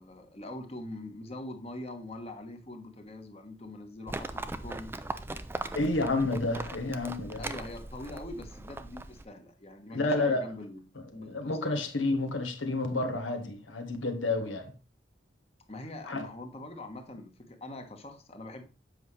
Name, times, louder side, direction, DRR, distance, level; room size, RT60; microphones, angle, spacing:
voice 1, 0.0-4.9 7.4-10.8 11.1-11.5 15.7-18.6, left 1 dB, 30° left, 1.2 m, -43 dB
Livestock farm animals working animals, 4.1-9.2, right 2 dB, 10° right, 0.3 m, -39 dB
voice 2, 5.7-7.5 9.9-10.5 11.2-14.7 16.0-16.3, left 2 dB, 90° left, 1.3 m, -30 dB
7.8 x 5.5 x 3.2 m
head